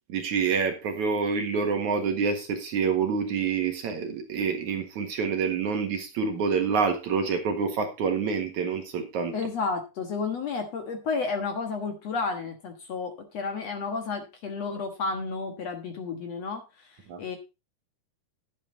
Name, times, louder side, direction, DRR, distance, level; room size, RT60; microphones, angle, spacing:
voice 1, 0.1-9.3 17.1-17.2, right 5 dB, 60° right, 5 dB, 2.8 m, -27 dB
voice 2, 9.3-17.4, left 4 dB, 55° left, 5 dB, 2.2 m, -32 dB
11.5 x 9.1 x 3.9 m, 0.27 s
omnidirectional pair, 4.2 m